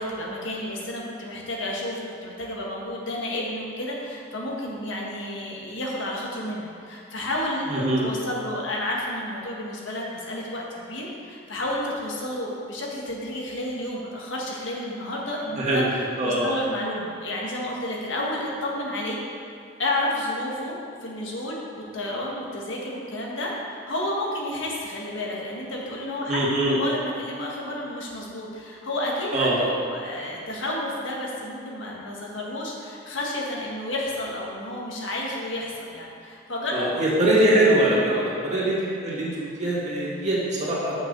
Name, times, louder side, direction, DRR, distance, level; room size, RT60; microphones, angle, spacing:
voice 1, 0.0-19.2 19.8-20.8 21.0-26.4 26.7-36.9 37.2-37.3 37.6-38.3, left 1 dB, 75° left, -3 dB, 1.7 m, -31 dB
voice 2, 7.7-8.0 15.6-15.8 16.2-16.5 26.3-26.8 29.3-29.6 36.7-38.0 38.4-40.9, right 1 dB, 40° right, -6 dB, 2.2 m, -22 dB
7.1 x 6.3 x 6.8 m, 2.3 s
head